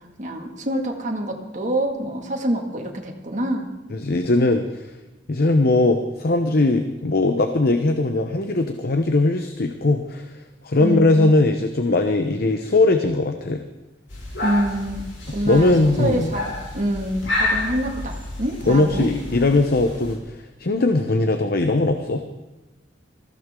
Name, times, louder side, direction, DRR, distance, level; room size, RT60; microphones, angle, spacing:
voice 1, 0.2-3.7 10.8-11.4 14.4-15.0 15.3-19.1, right 1 dB, 45° right, 1 dB, 2.2 m, -26 dB
voice 2, 3.9-4.9 5.3-10.3 10.6-13.6 15.4-16.3 18.7-22.2, left 2 dB, 55° left, 7 dB, 0.9 m, -20 dB
sound 1, 14.1-20.2, left 2 dB, 75° left, 5.6 m, -30 dB
20.0 x 15.0 x 3.8 m, 1.1 s
head